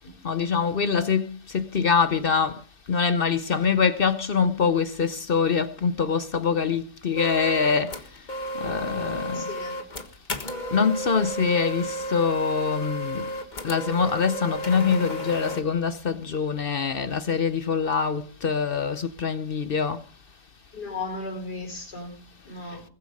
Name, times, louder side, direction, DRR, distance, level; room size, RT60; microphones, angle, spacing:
voice 1, 0.2-2.6 2.9-7.9 8.6-9.4 10.7-13.2 13.6-20.0, left 6 dB, 50° left, 0.7 m, -24 dB
sound 1, 7.2-15.6, equal, 30° left, 1.5 m, -33 dB
voice 2, 9.3-9.8 20.7-22.8, left 3 dB, 75° left, 6.0 m, -36 dB
21.0 x 8.2 x 5.4 m
omnidirectional pair, 1.7 m